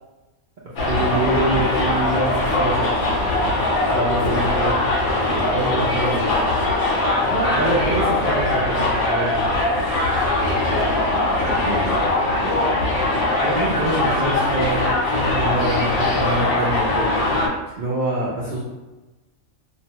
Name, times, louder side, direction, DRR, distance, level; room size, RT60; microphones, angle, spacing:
Subway metro underground, 0.8-17.5, left 2 dB, 80° left, 1.1 m, -21 dB
voice 1, 0.9-2.9 3.8-4.8 5.5-6.3 7.0-9.5 13.4-17.1 17.7-18.6, right 1 dB, 65° right, -7 dB, 0.4 m, -25 dB
voice 2, 7.1-7.7 10.6-13.0 18.4-18.6, left 2 dB, 50° left, -5 dB, 0.6 m, -32 dB
2.6 x 2.1 x 2.8 m, 1.1 s
omnidirectional pair, 1.4 m